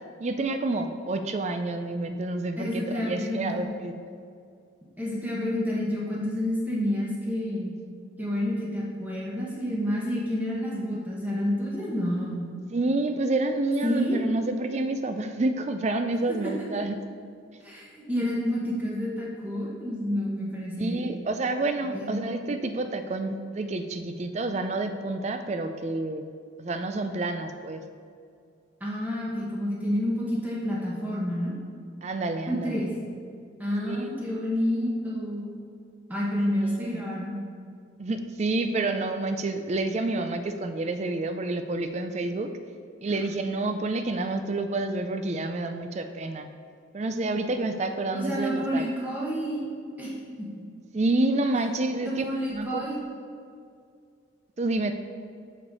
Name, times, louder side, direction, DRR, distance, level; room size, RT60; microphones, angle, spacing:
voice 1, 0.2-4.0 12.7-17.0 17.5-17.6 20.8-26.2 26.6-27.8 32.0-32.8 33.8-34.1 36.6-37.1 38.0-42.5 43.0-46.5 46.9-48.9 50.9-52.2 52.5-52.9 54.6-54.9, right 2 dB, 35° right, 8 dB, 0.4 m, -29 dB
voice 2, 2.6-3.7 5.0-7.7 8.2-12.4 13.8-14.2 16.4-16.5 17.6-21.1 21.9-22.1 28.8-31.5 32.5-32.9 33.6-35.5 36.1-37.3 43.1-43.2 48.1-49.7 50.0-50.1 50.4-50.5 52.0-53.0, equal, 10° right, -6 dB, 1.1 m, -29 dB
6.5 x 5.7 x 4.0 m, 2.3 s
head